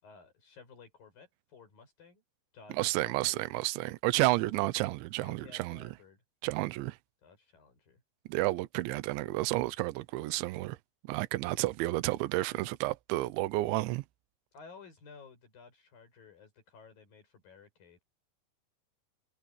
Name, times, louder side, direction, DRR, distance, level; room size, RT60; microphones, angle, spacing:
voice 1, 0.0-2.2 2.5-3.4 5.2-6.2 7.2-8.0 14.5-18.0, left 5 dB, 50° left, 7.5 m, -55 dB
voice 2, 2.7-5.9 6.4-7.0 8.3-10.8 11.1-14.0, right 19 dB, 80° right, 3.1 m, -31 dB
omnidirectional pair, 5.4 m